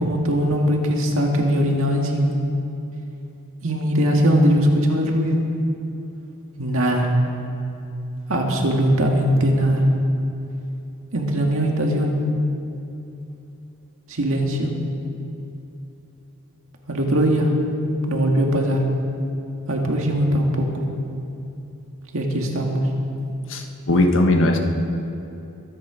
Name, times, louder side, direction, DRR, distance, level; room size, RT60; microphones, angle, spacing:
voice 1, 0.0-2.4 3.6-5.4 6.6-7.1 8.3-9.9 11.1-12.2 14.1-14.7 16.9-17.5 18.1-18.9 19.7-20.7 22.1-22.9, equal, 65° right, 1 dB, 2.0 m, -20 dB
voice 2, 23.5-24.6, left 1 dB, 60° left, 4 dB, 1.4 m, -18 dB
23.0 x 9.9 x 5.1 m, 2.9 s
head